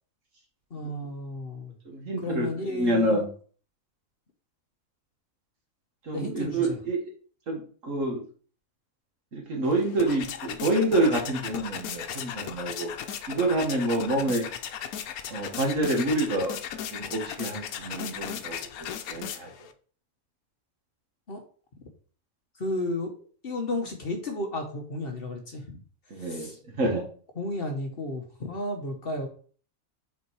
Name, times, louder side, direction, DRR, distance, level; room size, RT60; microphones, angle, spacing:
voice 1, 0.7-1.7 2.0-3.2 6.1-6.8 21.3-21.4 22.6-23.1 23.4-25.8 26.2-26.6 27.4-29.3, left 2 dB, 45° left, 3 dB, 1.2 m, -33 dB
voice 2, 1.9-2.5 2.8-3.3 6.1-7.0 7.5-8.2 9.3-12.9 13.3-14.4 15.3-16.6 16.9-19.5 26.1-27.0, right 1 dB, 65° right, 0 dB, 1.9 m, -27 dB
sound 1, 9.6-19.7, left 9 dB, 90° left, 1.2 m, -37 dB
5.8 x 4.6 x 4.6 m, 0.43 s
omnidirectional pair, 1.5 m